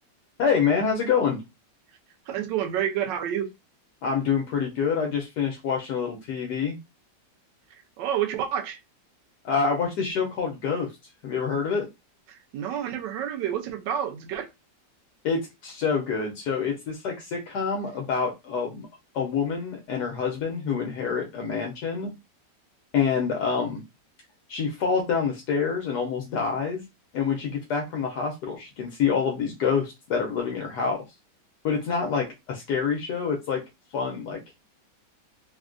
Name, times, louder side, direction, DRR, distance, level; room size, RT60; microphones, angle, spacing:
voice 1, 0.4-1.4 4.0-6.8 9.4-10.9 11.2-11.9 15.2-18.9 19.1-22.1 22.9-23.8 24.5-26.8 27.1-31.0 31.6-33.6 33.9-34.4, left 6 dB, 75° left, 1.1 m, -26 dB
voice 2, 2.3-3.5 8.0-8.8 12.3-14.5, right 10 dB, 85° right, 1.3 m, -29 dB
3.5 x 2.1 x 2.4 m
omnidirectional pair, 1.9 m